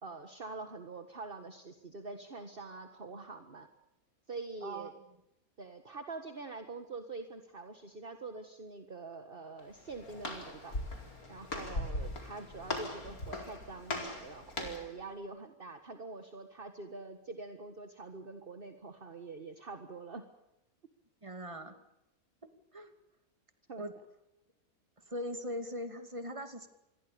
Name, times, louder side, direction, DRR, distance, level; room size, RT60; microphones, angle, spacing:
voice 1, 0.0-3.7 4.3-4.9 5.6-10.8 11.3-20.3 23.7-23.9, right 3 dB, 40° right, 7 dB, 1.9 m, -45 dB
voice 2, 4.6-4.9 21.2-21.8 22.7-22.9 23.8-23.9 25.0-26.7, equal, 20° right, 8 dB, 2.6 m, -40 dB
Walk footsteps, 9.6-15.0, left 1 dB, 85° left, 5.0 m, -40 dB
27.5 x 22.0 x 7.0 m, 0.87 s
omnidirectional pair, 1.5 m